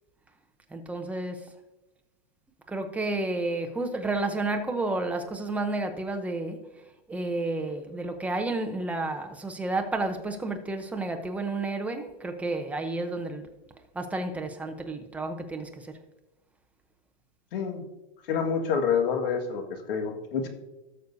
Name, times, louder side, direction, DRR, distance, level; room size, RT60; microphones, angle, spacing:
voice 1, 0.7-1.4 2.7-6.6 7.1-13.4 13.9-16.0, right 2 dB, 5° right, 0.7 m, -31 dB
voice 2, 17.5-17.8 18.3-20.5, left 6 dB, 65° left, 1.9 m, -27 dB
17.5 x 6.6 x 2.7 m
hypercardioid pair, 145°, 30 cm